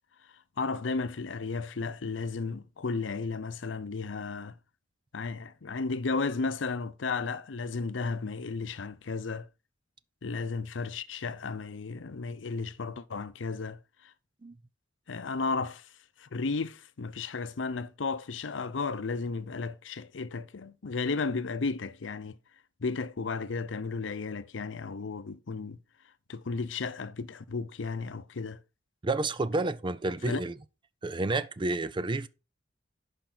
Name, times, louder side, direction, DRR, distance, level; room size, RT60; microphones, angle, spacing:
voice 1, 0.6-4.5 5.1-9.5 10.2-13.8 15.1-15.9 16.2-22.4 22.8-25.8 26.3-28.6 30.2-30.4, left 4 dB, 85° left, 0.6 m, -34 dB
voice 2, 29.0-30.5 31.0-32.3, right 2 dB, 25° right, 0.5 m, -30 dB
10.5 x 5.3 x 3.9 m
head